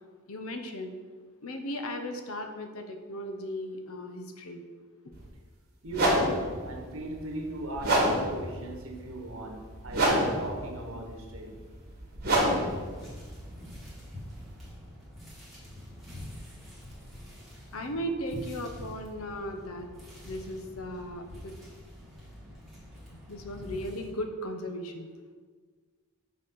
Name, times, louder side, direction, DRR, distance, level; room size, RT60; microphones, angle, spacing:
voice 1, 0.3-0.9 1.4-4.6 17.7-19.9 20.2-21.5 23.3-25.1, equal, 75° left, 0.8 m, -36 dB
sound 1, 5.1-5.3 5.9-14.7, right 1 dB, 45° right, 1.8 m, -29 dB
voice 2, 5.8-11.6, right 1 dB, 70° right, 1.2 m, -38 dB
sound 2, 12.7-24.1, left 1 dB, ahead, 1.9 m, -46 dB
6.4 x 4.1 x 5.7 m
head